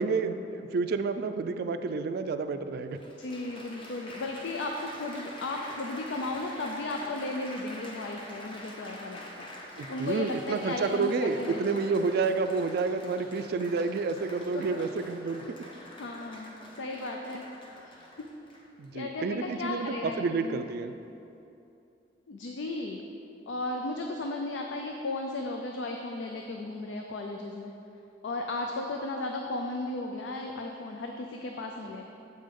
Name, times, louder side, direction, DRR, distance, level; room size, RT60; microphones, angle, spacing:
voice 1, 0.0-3.0 9.8-15.4 18.8-20.9, right 4 dB, 60° right, 9 dB, 0.3 m, -29 dB
Applause, 2.2-2.3 2.9-18.9 19.6-19.9, left 1 dB, 30° left, 0.7 m, -46 dB
voice 2, 3.2-9.5 9.9-11.8 14.5-14.8 16.0-17.4 18.9-20.7 22.3-23.0 23.5-27.7 28.2-32.0, left 2 dB, 85° left, 2 dB, 0.4 m, -35 dB
7.6 x 5.2 x 3.7 m, 2.7 s
head